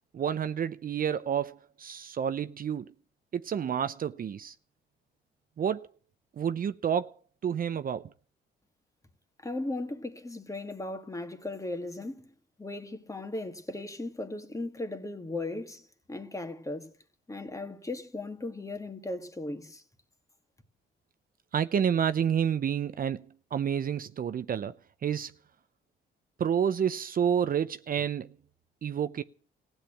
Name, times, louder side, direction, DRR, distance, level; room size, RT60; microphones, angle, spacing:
voice 1, 0.1-2.9 3.3-4.5 5.6-5.9 6.4-7.1 7.4-8.1 21.5-23.3 23.5-25.3 26.4-28.3 28.8-29.2, right 8 dB, 45° right, 0.7 m, -29 dB
voice 2, 9.4-12.3 12.6-16.9 17.3-19.8, left 2 dB, 15° left, 2.0 m, -37 dB
16.0 x 9.0 x 8.9 m
cardioid pair, 90°, 20 cm